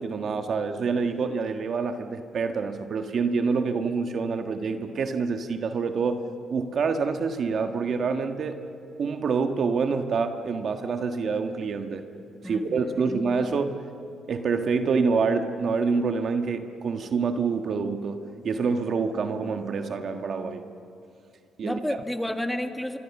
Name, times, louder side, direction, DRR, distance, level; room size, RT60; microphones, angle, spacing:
voice 1, 0.0-6.2 6.5-8.6 9.0-12.0 12.4-13.8 14.3-20.6 21.6-21.8, right 5 dB, 55° right, 6 dB, 1.5 m, -27 dB
voice 2, 12.4-13.3 21.6-23.0, left 1 dB, 5° left, 6 dB, 1.8 m, -31 dB
25.5 x 25.0 x 7.2 m, 2.6 s
cardioid pair, 90°, 0 cm